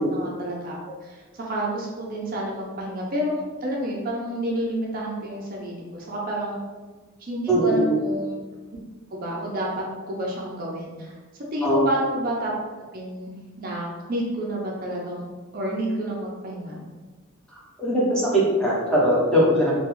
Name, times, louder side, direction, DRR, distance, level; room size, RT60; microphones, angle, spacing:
voice 1, 0.0-6.6 7.2-8.4 9.1-11.1 11.5-12.5 12.9-13.3 13.6-15.2 15.5-16.8, right 1 dB, 40° right, -3 dB, 0.4 m, -29 dB
voice 2, 7.5-7.9 11.6-11.8 17.8-19.7, equal, 5° left, -7 dB, 0.6 m, -20 dB
2.3 x 2.3 x 3.0 m, 1.3 s
head